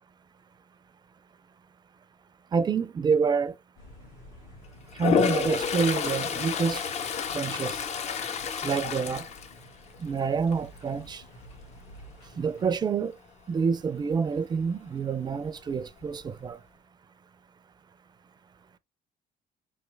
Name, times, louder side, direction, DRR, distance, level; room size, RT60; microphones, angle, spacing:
voice 1, 2.5-3.5 5.0-6.8 7.3-7.8 8.6-9.3 10.0-11.2 12.4-13.1 13.5-16.6, right 5 dB, 25° right, 0.4 m, -27 dB
sound 1, 3.8-12.8, equal, 70° left, 1.7 m, -51 dB
Toilet flush, 4.9-10.1 10.5-10.9 15.4-15.5 15.7-16.5, left 6 dB, 40° left, 0.4 m, -29 dB
3.3 x 2.6 x 3.2 m
cardioid pair, 110°, 17 cm